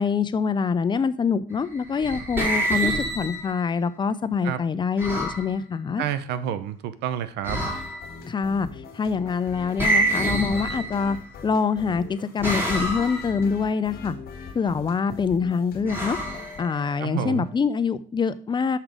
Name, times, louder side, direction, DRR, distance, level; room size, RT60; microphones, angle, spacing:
voice 1, 0.0-6.0 8.2-11.2 11.4-14.1 14.5-16.2 16.6-18.8, left 5 dB, 25° left, 0.5 m, -25 dB
sound 1, 1.7-3.7 5.0-5.5 7.4-8.2 9.8-11.3 12.4-13.4 15.9-17.1, right 1 dB, 15° right, 2.5 m, -27 dB
voice 2, 6.0-7.6 17.0-17.5, right 10 dB, 90° right, 0.7 m, -29 dB
sound 2, 7.5-16.6, left 5 dB, 65° left, 1.6 m, -42 dB
6.1 x 5.8 x 5.0 m
cardioid pair, 110°, 17 cm